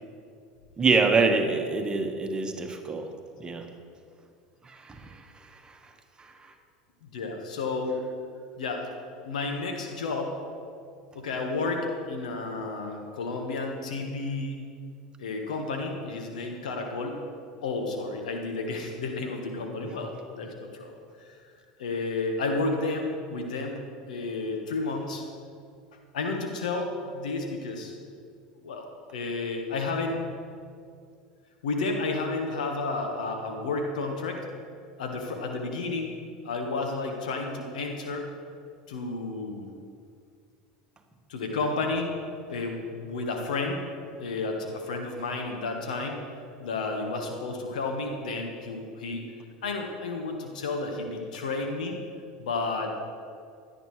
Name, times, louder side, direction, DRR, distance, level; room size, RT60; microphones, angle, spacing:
voice 1, 0.8-3.0 3.4-3.6 4.6-5.2 5.6-5.8 6.2-6.5, right 4 dB, 20° right, 4 dB, 1.4 m, -26 dB
voice 2, 7.0-8.0 8.6-8.9 9.2-10.4 11.1-14.7 15.2-17.2 17.6-21.4 21.8-23.8 24.1-25.2 26.1-28.0 28.6-30.2 31.6-34.4 35.0-36.1 36.4-38.2 38.9-39.7 41.3-42.1 42.5-43.8 44.2-46.2 46.6-49.3 49.6-52.0 52.4-53.1, left 3 dB, 80° left, 3 dB, 1.4 m, -31 dB
17.0 x 10.5 x 3.3 m, 2.3 s
hypercardioid pair, 80°, 4 cm